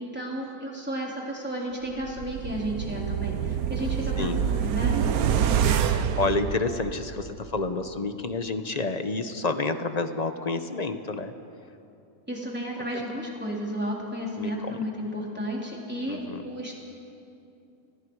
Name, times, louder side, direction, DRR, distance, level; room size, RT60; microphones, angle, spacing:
voice 1, 0.0-5.0 5.6-5.8 12.3-16.8, equal, 5° right, -3 dB, 3.8 m, -33 dB
sound 1, 2.0-7.2 7.6-7.7, right 8 dB, 80° right, 1.3 m, -26 dB
voice 2, 5.8-11.3 14.4-14.8 16.1-16.4, left 3 dB, 30° left, 9 dB, 0.9 m, -29 dB
30.0 x 20.0 x 4.8 m, 2.8 s
omnidirectional pair, 1.5 m